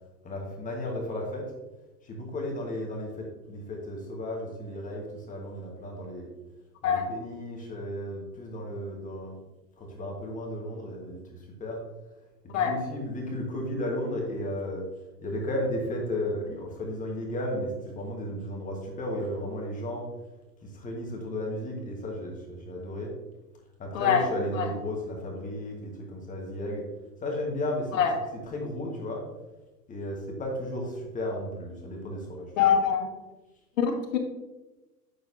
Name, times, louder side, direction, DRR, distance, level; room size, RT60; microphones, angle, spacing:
voice 1, 0.2-1.5 2.0-6.3 6.8-9.4 9.8-11.8 12.5-14.9 15.2-20.1 20.6-23.1 23.8-26.8 27.2-29.2 29.9-32.7, left 1 dB, 15° left, -1 dB, 1.4 m, -34 dB
voice 2, 32.6-33.1 33.8-34.2, left 7 dB, 50° left, 3 dB, 1.6 m, -24 dB
8.7 x 6.5 x 2.7 m, 1.1 s
figure-of-eight pair, 110°, 49 cm